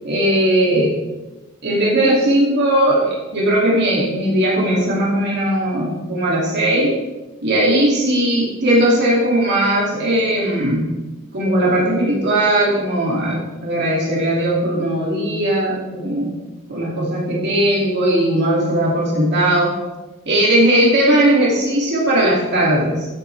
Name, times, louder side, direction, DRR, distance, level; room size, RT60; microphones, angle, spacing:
voice 1, 0.0-1.0 1.6-7.0 7.4-10.9 11.3-16.3 16.7-19.8 20.3-23.1, right 1 dB, 50° right, -5 dB, 2.7 m, -18 dB
16.0 x 8.1 x 3.4 m, 1.1 s
head